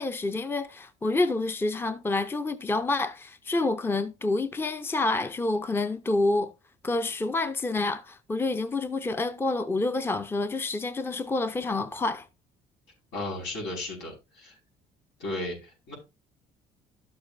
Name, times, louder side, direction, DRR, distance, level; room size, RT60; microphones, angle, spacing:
voice 1, 0.0-6.5 6.8-12.3, left 2 dB, 15° left, 0.6 m, -28 dB
voice 2, 13.1-14.6 15.2-15.9, left 2 dB, 85° left, 5.3 m, -35 dB
12.0 x 6.9 x 2.6 m
cardioid pair, 110°, 17 cm